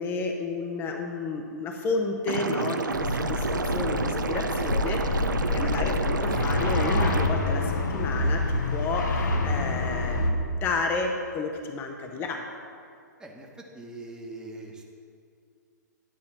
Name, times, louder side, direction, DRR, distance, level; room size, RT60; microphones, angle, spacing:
voice 1, 0.0-5.3 5.5-12.4, left 3 dB, 20° left, 3 dB, 0.7 m, -31 dB
Liquid, 2.3-7.3, right 4 dB, 90° right, 0.6 m, -29 dB
sound 1, 2.9-10.3, left 2 dB, 70° left, 1.1 m, -27 dB
voice 2, 13.7-14.8, right 2 dB, 5° right, 0 dB, 1.0 m, -41 dB
9.9 x 4.2 x 7.2 m, 2.3 s
hypercardioid pair, 130°, 10 cm